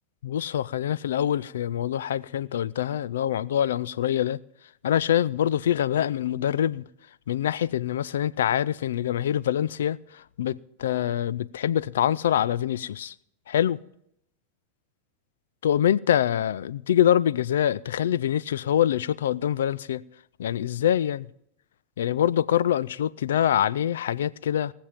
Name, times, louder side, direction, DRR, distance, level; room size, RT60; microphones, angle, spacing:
voice 1, 0.2-4.4 4.8-6.8 7.3-13.1 13.5-13.8 15.6-20.0 20.4-21.3 22.0-24.7, left 10 dB, 80° left, 0.4 m, -25 dB
19.0 x 7.3 x 5.1 m
hypercardioid pair, 105°, 0 cm